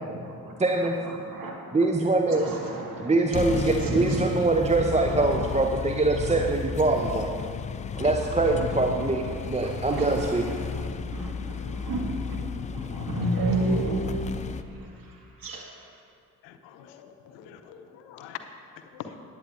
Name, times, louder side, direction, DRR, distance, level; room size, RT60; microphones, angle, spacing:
voice 1, 0.1-1.5 2.3-4.5 5.0-5.5 6.3-6.4 7.1-7.5 7.9-8.1 8.7-8.8 9.2-15.9, right 2 dB, 45° right, 0 dB, 2.1 m, -33 dB
voice 2, 0.6-1.0 1.7-2.5 3.0-7.3 8.0-10.6, right 2 dB, 15° right, 3 dB, 0.7 m, -24 dB
sound 1, 3.3-14.6, left 6 dB, 20° left, 0.3 m, -33 dB
voice 3, 16.4-18.4 18.9-19.1, left 10 dB, 65° left, 8 dB, 0.8 m, -43 dB
19.0 x 8.5 x 2.6 m, 2.4 s
figure-of-eight pair, 40°, 47 cm